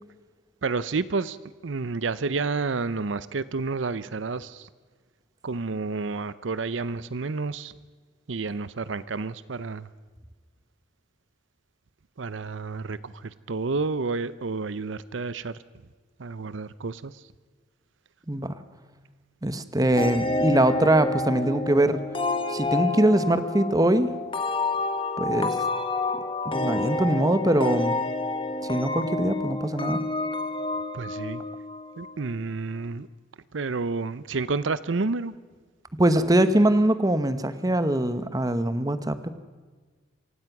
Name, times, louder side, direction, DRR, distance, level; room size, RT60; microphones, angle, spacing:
voice 1, 0.6-1.4 1.6-4.7 5.4-7.7 8.3-9.9 12.2-15.6 16.2-17.2 30.9-31.4 32.0-33.1 33.5-35.3, right 4 dB, 75° right, 17 dB, 0.7 m, -30 dB
voice 2, 19.4-22.0 22.5-24.1 25.2-25.6 26.4-28.0 28.6-30.0 36.0-39.3, right 1 dB, 20° right, 12 dB, 1.0 m, -22 dB
sound 1, 20.0-32.4, left 2 dB, 25° left, 1.3 m, -29 dB
27.5 x 16.0 x 6.0 m, 1.4 s
head